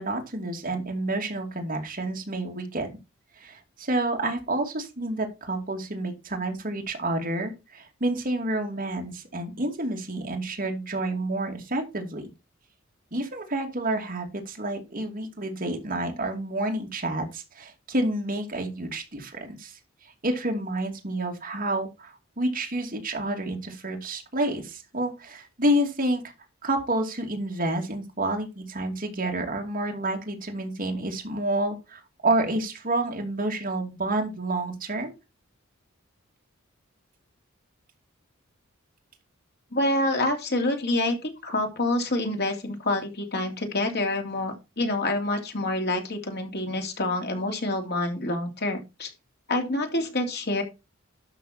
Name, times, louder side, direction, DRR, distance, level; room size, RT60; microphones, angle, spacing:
voice 1, 0.0-2.9 3.4-12.3 13.1-19.7 20.2-26.2 26.6-35.1, right 1 dB, 45° right, 2 dB, 2.6 m, -29 dB
voice 2, 39.7-49.1 49.5-50.6, left 2 dB, 55° left, 4 dB, 2.9 m, -27 dB
12.5 x 5.9 x 4.3 m, 0.26 s
head